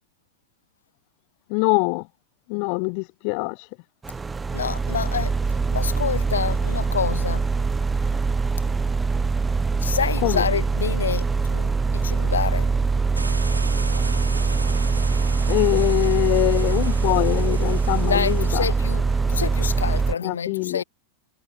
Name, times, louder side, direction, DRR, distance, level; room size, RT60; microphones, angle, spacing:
voice 1, 1.5-2.0 2.5-3.7 10.2-10.4 15.5-18.6 20.2-20.8, left 40 dB or more, 45° left, 0.4 m, -23 dB
sound 1, 4.0-20.1, right 4 dB, 15° right, 0.6 m, -23 dB
voice 2, 4.5-7.5 9.8-12.7 18.1-20.8, left 7 dB, 70° left, 1.7 m, -28 dB
sound 2, 13.1-18.6, right 3 dB, 80° right, 3.5 m, -36 dB
figure-of-eight pair, 90°, 0 cm